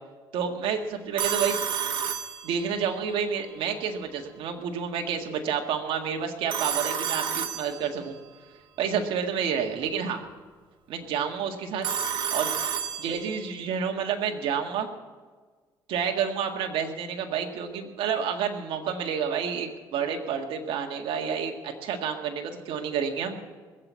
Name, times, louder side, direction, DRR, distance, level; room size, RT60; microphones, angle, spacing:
voice 1, 0.3-1.6 2.4-8.2 8.8-10.2 10.9-11.9 12.3-12.6 13.0-14.9 15.9-23.4, right 7 dB, 80° right, 3 dB, 1.8 m, -29 dB
Telephone, 1.2-3.0 6.5-8.2 11.8-13.5, right 8 dB, 65° right, 1.5 m, -30 dB
20.5 x 7.8 x 8.3 m, 1.5 s
cardioid pair, 90°, 9 cm